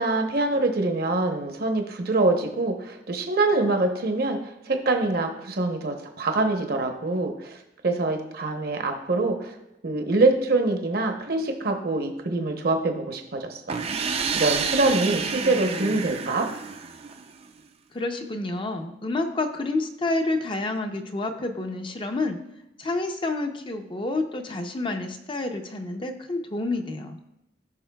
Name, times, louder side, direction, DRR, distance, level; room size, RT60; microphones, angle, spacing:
voice 1, 0.0-4.4 4.6-7.6 7.8-9.5 9.8-13.8 14.3-16.5, right 2 dB, 60° right, 4 dB, 0.9 m, -24 dB
sound 1, 13.7-17.4, right 5 dB, 35° right, 0.4 m, -29 dB
voice 2, 17.9-22.4 22.8-27.2, left 2 dB, 30° left, 6 dB, 0.7 m, -29 dB
14.5 x 5.5 x 2.3 m, 0.89 s
head